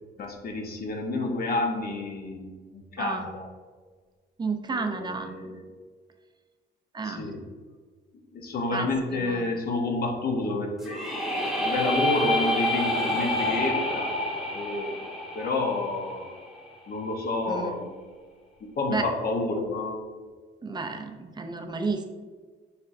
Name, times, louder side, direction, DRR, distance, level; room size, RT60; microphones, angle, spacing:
voice 1, 0.2-3.5 4.7-5.6 7.0-7.4 8.3-11.0 11.4-14.1 14.5-15.1 15.3-16.4 16.9-18.0 18.6-20.0, left 2 dB, 55° left, 1 dB, 0.8 m, -29 dB
voice 2, 4.4-5.3 6.9-7.3 8.7-9.5 17.5-17.8 18.9-19.0 20.6-22.0, right 4 dB, 25° right, 6 dB, 0.5 m, -32 dB
sound 1, 10.8-16.7, left 1 dB, ahead, 0.8 m, -28 dB
4.3 x 4.2 x 2.5 m, 1.5 s
cardioid pair, 100°, 19 cm